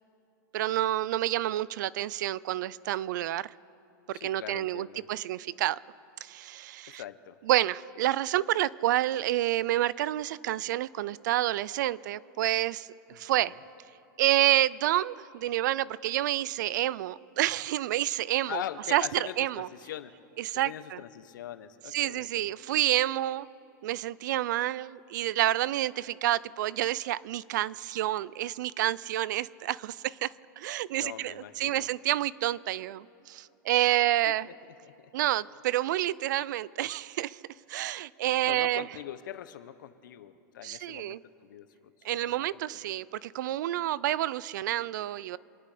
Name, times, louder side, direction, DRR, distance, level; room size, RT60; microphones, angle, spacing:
voice 1, 0.5-3.5 4.1-5.8 6.2-7.0 7.5-12.9 13.2-13.5 14.2-18.6 18.9-19.1 19.4-19.7 20.4-21.0 21.9-23.5 23.8-34.5 35.1-37.4 37.7-38.9 40.6-41.2 42.0-45.4, right 14 dB, 65° right, 21 dB, 0.4 m, -29 dB
voice 2, 4.1-5.1 6.9-7.4 13.1-13.5 18.5-20.1 20.6-22.5 31.0-31.9 33.9-34.5 34.8-35.1 38.5-42.6, left 11 dB, 75° left, 12 dB, 1.0 m, -42 dB
27.5 x 10.5 x 5.0 m, 2.8 s
supercardioid pair, 145°, 10 cm